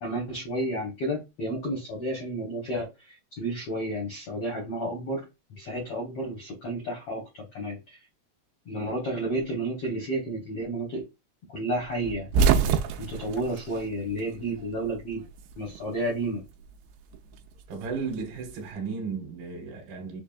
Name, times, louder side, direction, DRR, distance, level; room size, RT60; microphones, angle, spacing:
voice 1, 0.0-5.3 5.6-8.0 8.6-11.1 11.5-12.3 13.0-15.2 15.6-16.4, right 1 dB, 85° left, 1.3 m, -31 dB
sound 1, 12.0-14.6 14.9-15.9 17.1-18.6, right 6 dB, 90° right, 2.7 m, -26 dB
voice 2, 17.7-20.2, right 5 dB, 70° right, 2.9 m, -34 dB
6.4 x 2.3 x 2.5 m
omnidirectional pair, 4.8 m